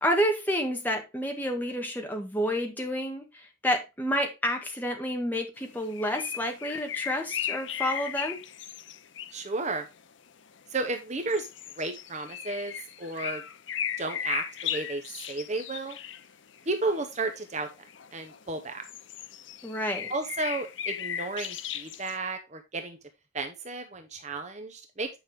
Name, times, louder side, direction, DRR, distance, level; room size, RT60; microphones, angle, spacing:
voice 1, 0.0-8.4 19.6-20.1, equal, 10° left, 1.7 m, -29 dB
sound 1, 5.6-9.6 10.0-10.1 10.6-10.7 11.3-18.4 18.8-22.2, left 9 dB, 70° left, 0.7 m, -36 dB
voice 2, 9.3-9.8 10.7-11.5 11.8-13.4 14.0-16.0 16.7-17.7 18.1-18.8 20.1-23.0 23.3-25.1, right 3 dB, 35° right, 0.9 m, -33 dB
9.3 x 5.4 x 3.6 m
head